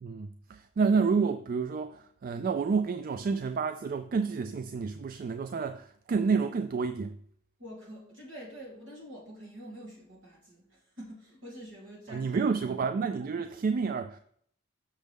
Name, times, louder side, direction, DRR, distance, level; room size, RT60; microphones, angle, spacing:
voice 1, 0.0-7.2 12.1-14.2, right 5 dB, 45° right, 0.3 m, -29 dB
voice 2, 7.6-12.4, equal, 65° right, 3.2 m, -46 dB
6.5 x 6.3 x 3.5 m
head